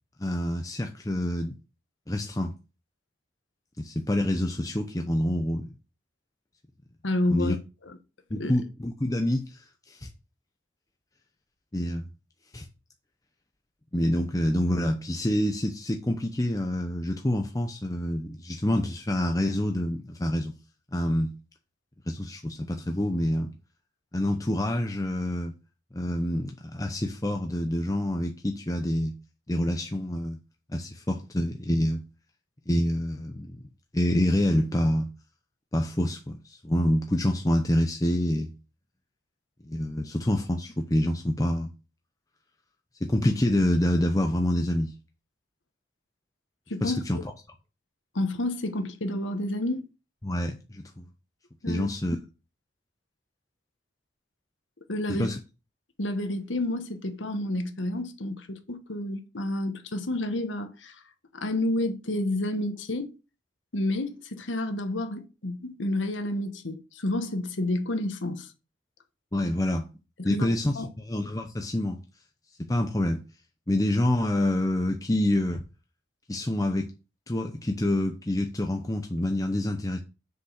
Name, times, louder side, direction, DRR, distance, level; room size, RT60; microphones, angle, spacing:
voice 1, 0.2-1.6 2.1-2.5 3.8-5.7 7.3-7.5 8.3-10.1 11.7-12.1 12.5-12.7 13.9-20.6 20.9-21.3 22.1-23.5 24.1-25.5 25.9-29.2 29.5-30.4 30.7-32.0 32.7-33.6 33.9-35.1 35.7-38.5 39.7-41.7 43.0-44.9 46.8-47.2 50.2-51.1 51.7-52.2 55.1-55.4 69.3-69.9 70.2-72.0 72.7-73.2 73.7-75.6 76.3-76.9 77.3-80.0, left 1 dB, 20° left, 0.7 m, -27 dB
voice 2, 7.0-7.6 8.3-8.5 46.7-47.2 48.1-49.9 51.6-51.9 54.9-55.3 56.0-61.0 61.3-63.1 63.7-68.5 70.2-70.5 70.7-70.9, left 1 dB, 85° left, 1.3 m, -30 dB
6.6 x 5.1 x 6.5 m
head